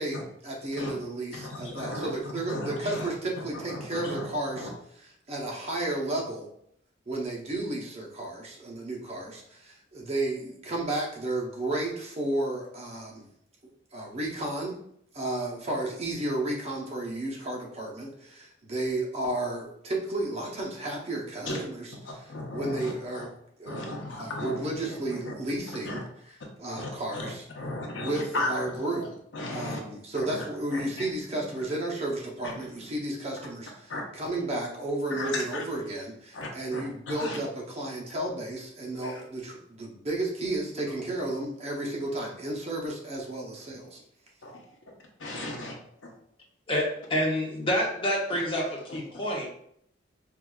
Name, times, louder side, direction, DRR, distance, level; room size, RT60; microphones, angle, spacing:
voice 1, 0.0-4.7 5.3-6.5 7.1-13.2 13.9-14.8 15.1-21.8 22.5-23.3 23.6-26.0 26.6-27.4 27.9-29.1 29.5-33.7 34.1-44.0, right 2 dB, 35° right, -2 dB, 0.7 m, -32 dB
voice 2, 1.4-2.1 2.5-3.1 3.5-4.7 21.5-21.6 22.0-23.3 23.6-25.0 25.2-25.3 25.8-26.0 26.8-27.3 27.6-29.8 30.1-30.4 30.7-31.7 32.4-32.9 33.9-34.0 35.2-35.6 36.3-37.4 39.0-39.2 44.4-44.7 45.2-45.7 48.9-49.2, left 1 dB, 75° left, 0 dB, 0.7 m, -36 dB
voice 3, 46.7-49.5, equal, 25° left, -2 dB, 0.7 m, -28 dB
4.6 x 2.4 x 2.3 m, 0.69 s
head